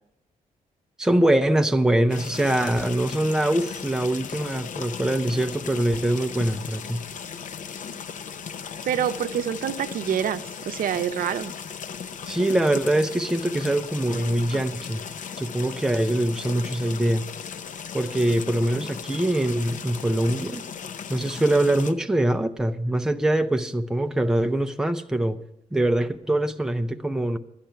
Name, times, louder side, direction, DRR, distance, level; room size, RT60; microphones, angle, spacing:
voice 1, 1.0-7.0 12.3-15.0 15.4-17.3 17.9-20.6 21.1-25.4 25.7-27.4, right 1 dB, 5° right, 0.5 m, -23 dB
sound 1, 2.1-21.9, left 7 dB, 65° left, 0.6 m, -37 dB
voice 2, 8.8-11.5, right 9 dB, 85° right, 0.6 m, -26 dB
12.0 x 10.0 x 5.6 m
wide cardioid pair, 165°, 14 cm